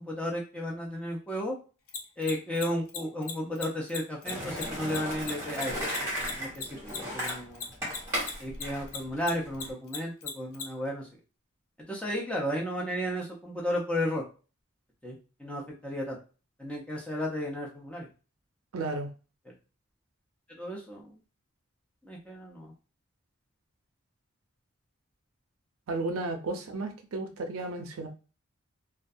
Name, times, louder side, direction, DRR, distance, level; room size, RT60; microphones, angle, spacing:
voice 1, 0.0-1.5 2.2-5.8 6.4-7.7 8.4-11.1 11.9-14.2 15.0-16.2 16.6-18.1 20.6-21.1 22.0-22.7, equal, 5° left, -2 dB, 0.5 m, -33 dB
Mechanisms, 1.9-8.6 8.9-10.6, left 7 dB, 75° left, 0.5 m, -36 dB
Skateboard, 4.2-9.7, equal, 10° right, 1.1 m, -35 dB
voice 2, 18.7-19.1 25.9-28.1, right 2 dB, 75° right, 5 dB, 0.5 m, -33 dB
2.3 x 2.2 x 2.5 m, 0.35 s
head